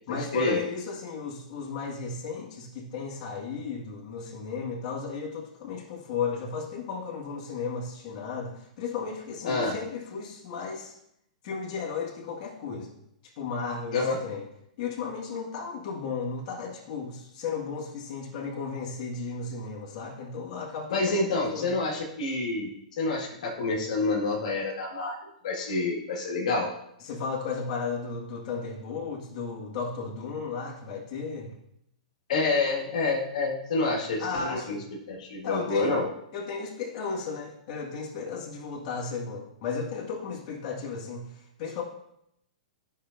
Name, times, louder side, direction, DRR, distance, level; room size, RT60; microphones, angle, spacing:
voice 1, 0.1-10.9 11.4-12.9 13.2-14.4 14.8-21.8 27.0-31.5 34.2-34.9 35.4-36.0 36.3-41.8, left 5 dB, 45° left, -3 dB, 1.8 m, -34 dB
voice 2, 9.4-9.8 13.9-14.2 20.9-25.2 25.4-26.7 32.3-34.8 35.1-36.1, left 3 dB, 65° left, -2 dB, 1.8 m, -28 dB
12.0 x 5.7 x 2.6 m, 0.78 s
hypercardioid pair, 120°, 4 cm